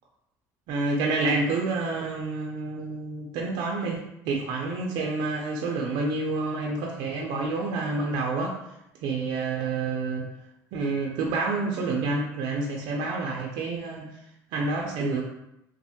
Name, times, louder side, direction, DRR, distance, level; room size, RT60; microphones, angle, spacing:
voice 1, 0.7-8.5 9.0-10.3 10.7-14.1 14.5-15.2, right 3 dB, 70° right, -1 dB, 0.4 m, -28 dB
3.1 x 2.1 x 2.8 m, 0.83 s
supercardioid pair, 105°, 8 cm